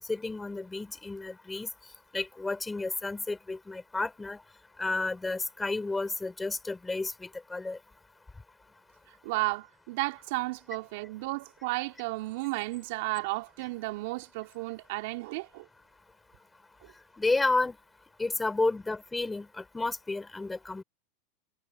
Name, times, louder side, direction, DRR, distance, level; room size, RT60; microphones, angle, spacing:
voice 1, 0.1-1.7 2.1-4.4 4.8-7.8 17.2-17.8 18.2-20.8, left 3 dB, 10° left, 4.2 m, -31 dB
voice 2, 9.2-15.7, right 23 dB, 65° right, 2.7 m, -33 dB
hypercardioid pair, 105°, 0 cm